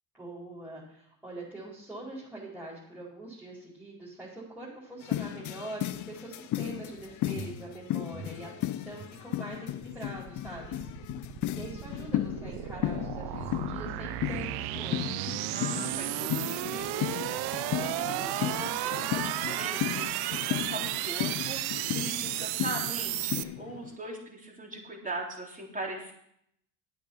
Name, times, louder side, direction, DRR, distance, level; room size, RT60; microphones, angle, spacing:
voice 1, 0.1-11.1 11.5-15.2, right 2 dB, 5° right, -7 dB, 4.7 m, -44 dB
sound 1, 5.0-24.0, left 14 dB, 45° left, 0.6 m, -35 dB
sound 2, 6.9-9.2 9.5-16.2 16.6-17.0 17.2-17.6, right 4 dB, 50° right, 4.3 m, -50 dB
sound 3, 9.9-23.4, right 16 dB, 70° right, 0.7 m, -34 dB
voice 2, 15.5-26.1, right 2 dB, 20° right, -1 dB, 3.8 m, -40 dB
10.5 x 8.6 x 5.7 m, 0.73 s
supercardioid pair, 75°, 40 cm